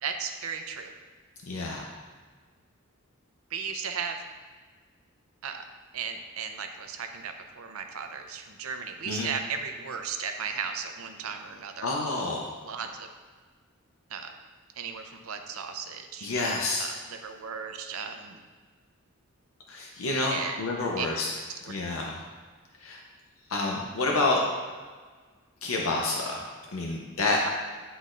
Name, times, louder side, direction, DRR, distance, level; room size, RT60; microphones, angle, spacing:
voice 1, 0.0-0.9 3.5-4.2 5.4-5.6 5.9-11.9 12.6-13.1 14.1-14.3 14.8-16.3 16.8-18.4 20.3-20.6 21.0-21.1 21.6-21.8, right 6 dB, 90° right, 5 dB, 0.6 m, -35 dB
voice 2, 1.5-1.9 9.1-9.3 11.8-12.5 16.2-16.9 19.7-21.3 21.7-22.2 22.8-23.0 23.5-24.4 25.6-26.4 26.7-27.5, left 2 dB, 75° left, -1 dB, 0.6 m, -28 dB
10.0 x 3.9 x 2.5 m, 1.5 s
head